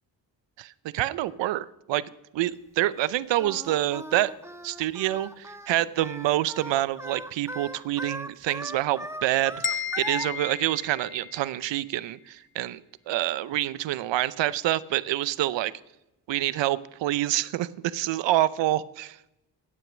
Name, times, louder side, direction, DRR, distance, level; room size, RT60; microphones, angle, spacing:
voice 1, 0.6-2.0 2.3-4.3 4.6-12.8 13.1-15.7 16.3-19.2, right 14 dB, 75° right, 18 dB, 0.7 m, -27 dB
Singing, 3.4-10.3, right 1 dB, 5° right, 1.3 m, -39 dB
sound 1, 9.6-11.6, left 8 dB, 25° left, 0.9 m, -33 dB
15.5 x 9.1 x 6.1 m, 0.91 s
supercardioid pair, 50°, 44 cm